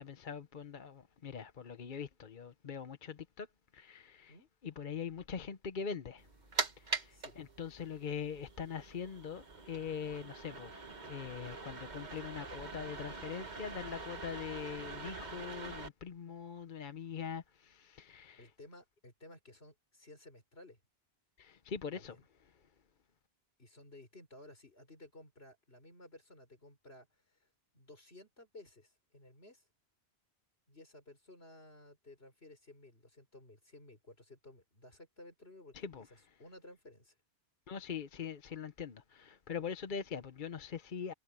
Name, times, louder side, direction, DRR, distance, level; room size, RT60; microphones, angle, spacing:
voice 1, 0.0-3.5 3.7-4.3 4.6-6.3 6.8-18.5 21.4-22.2 22.5-22.6 35.7-36.1 37.7-41.1, left 6 dB, 50° left, 1.0 m, -43 dB
sound 1, 6.2-15.9, right 4 dB, 45° right, 1.5 m, -43 dB
voice 2, 7.1-7.5 18.4-20.8 21.9-22.2 23.6-27.5 27.7-29.7 30.7-37.2, left 1 dB, 70° left, 5.3 m, -56 dB
omnidirectional pair, 1.1 m